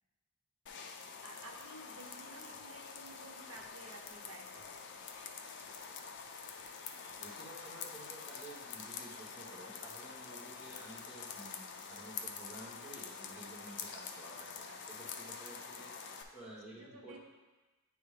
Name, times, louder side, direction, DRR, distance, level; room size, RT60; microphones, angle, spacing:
sound 1, 0.7-16.2, left 6 dB, 55° left, 0.5 m, -47 dB
voice 1, 1.2-5.0 14.4-15.1 15.7-15.9 16.7-17.2, right 2 dB, 70° right, 1 dB, 0.9 m, -54 dB
sound 2, 2.0-10.6, equal, 20° left, 1.3 m, -67 dB
voice 2, 7.0-15.9 16.3-17.2, right 1 dB, 5° right, -9 dB, 1.5 m, -53 dB
9.2 x 3.5 x 3.3 m, 1.2 s
head